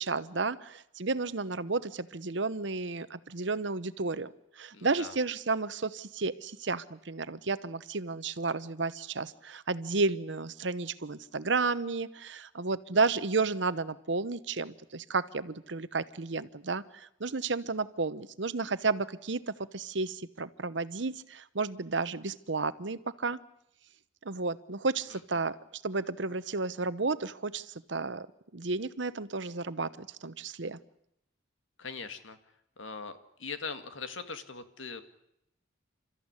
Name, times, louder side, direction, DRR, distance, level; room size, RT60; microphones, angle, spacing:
voice 1, 0.0-4.3 4.6-23.4 24.2-28.3 28.5-30.8, right 3 dB, 70° right, 15 dB, 1.0 m, -32 dB
voice 2, 4.7-5.2 25.1-25.2 31.8-32.4 32.8-35.0, left 4 dB, 85° left, 9 dB, 2.1 m, -41 dB
29.5 x 14.0 x 9.8 m, 0.79 s
head